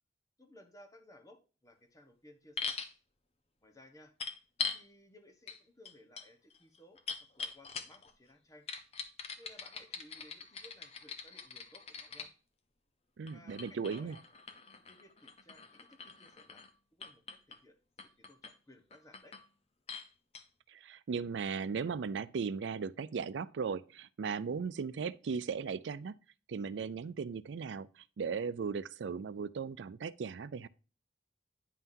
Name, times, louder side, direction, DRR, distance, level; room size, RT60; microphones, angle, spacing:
voice 1, 0.4-2.8 3.6-4.1 4.7-7.0 7.4-8.7 9.4-12.3 13.3-14.2 14.9-16.6 16.9-17.8 18.3-19.4, left 1 dB, 20° left, 1.1 m, -59 dB
sound 1, 2.6-2.9 4.2-4.8 5.5-5.6 5.8-8.1 8.7-12.3 13.3-16.7 17.0-17.6 18.0-18.5 18.9-19.5 19.9-20.1 20.3-20.4, left 5 dB, 35° left, 0.7 m, -42 dB
voice 2, 13.2-14.2 20.7-26.2 26.5-30.7, right 5 dB, 85° right, 0.4 m, -37 dB
9.3 x 5.6 x 2.7 m
head